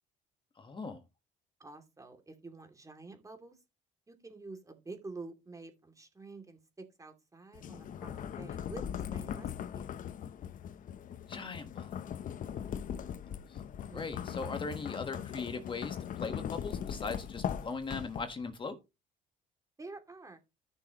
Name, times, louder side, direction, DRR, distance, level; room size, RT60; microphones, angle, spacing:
voice 1, 0.6-1.0 11.3-11.9 13.5-13.6 13.9-18.8, left 4 dB, 30° left, 7 dB, 1.5 m, -39 dB
voice 2, 1.6-3.6 4.1-10.0 13.9-14.3 19.8-20.4, right 3 dB, 20° right, 6 dB, 2.6 m, -49 dB
sound 1, 7.5-18.5, left 9 dB, 50° left, 0.8 m, -40 dB
14.0 x 6.4 x 3.0 m, 0.25 s
cardioid pair, 95°, 17 cm